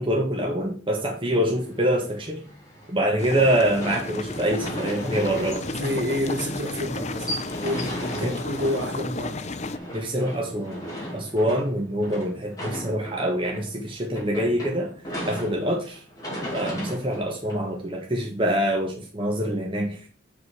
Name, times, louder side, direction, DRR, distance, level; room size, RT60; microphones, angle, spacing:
voice 1, 0.0-2.4 2.9-5.6 7.8-8.3 9.9-10.8 11.1-14.9 15.2-16.0 16.5-20.1, right 1 dB, 25° right, 1.1 m, -25 dB
sound 1, 1.3-18.2, equal, 20° left, 3.0 m, -37 dB
sound 2, 3.2-9.8, left 2 dB, 35° left, 0.5 m, -33 dB
voice 2, 5.7-9.4, equal, 65° right, 2.6 m, -29 dB
7.9 x 5.3 x 4.8 m
head